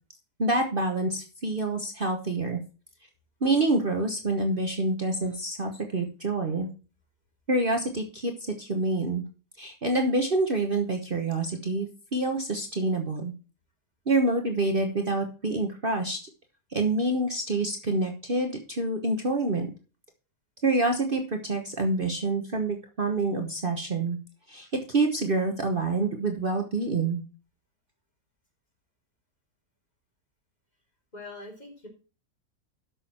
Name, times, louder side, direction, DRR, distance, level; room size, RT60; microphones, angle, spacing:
voice 1, 0.4-2.6 3.4-6.7 7.5-9.2 9.6-11.9 12.1-13.3 14.1-16.2 16.7-19.7 20.6-24.2 24.5-27.2, right 2 dB, 40° right, 4 dB, 1.3 m, -27 dB
voice 2, 31.1-31.9, left 2 dB, 30° left, 0 dB, 3.9 m, -42 dB
12.5 x 6.4 x 4.3 m, 0.34 s
omnidirectional pair, 1.5 m